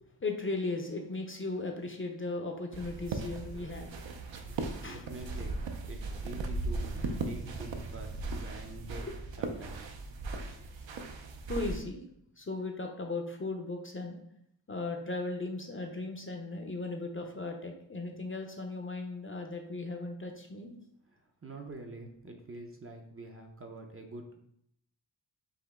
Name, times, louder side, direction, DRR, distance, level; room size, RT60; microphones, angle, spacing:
voice 1, 0.0-4.0 4.5-5.1 9.0-9.1 11.5-12.0 12.4-14.2 14.7-20.7, left 3 dB, 30° left, 3 dB, 0.5 m, -37 dB
sound 1, 2.7-11.8, right 3 dB, 75° right, 0.6 m, -37 dB
voice 2, 4.5-5.6 5.9-9.1 9.4-9.9 10.5-10.7 21.4-24.4, right 2 dB, 30° right, 3 dB, 0.5 m, -46 dB
5.0 x 2.9 x 3.5 m, 0.73 s
wide cardioid pair, 130°, 46 cm